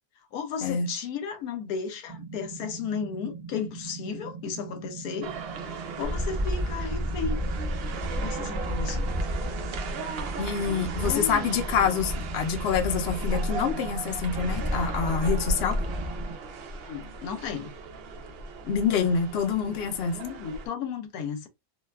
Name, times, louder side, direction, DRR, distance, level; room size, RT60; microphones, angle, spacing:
voice 1, 0.3-5.3 5.7-7.4 8.1-9.1 10.9-11.5 16.8-17.7 20.1-21.5, left 6 dB, 85° left, 1.1 m, -34 dB
sound 1, 2.1-16.4, right 5 dB, 50° right, 1.2 m, -42 dB
sound 2, 5.2-20.7, right 2 dB, 70° right, 0.5 m, -36 dB
sound 3, 6.0-16.2, equal, 25° right, 0.6 m, -33 dB
voice 2, 10.4-15.8 18.6-20.2, left 6 dB, 60° left, 0.7 m, -26 dB
2.6 x 2.3 x 2.2 m
omnidirectional pair, 1.6 m